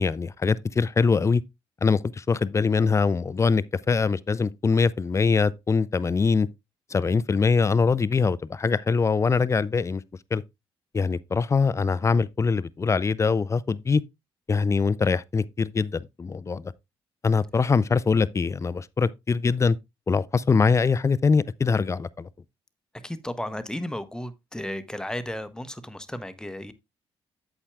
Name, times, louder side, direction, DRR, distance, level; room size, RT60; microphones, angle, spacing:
voice 1, 0.0-1.4 1.8-6.5 6.9-10.0 10.3-10.4 10.9-14.0 14.5-16.7 17.2-19.8 20.1-22.3, left 5 dB, 25° left, 0.4 m, -23 dB
voice 2, 23.0-26.7, left 1 dB, 5° left, 0.9 m, -34 dB
8.3 x 8.1 x 2.3 m
figure-of-eight pair, 40°, 13 cm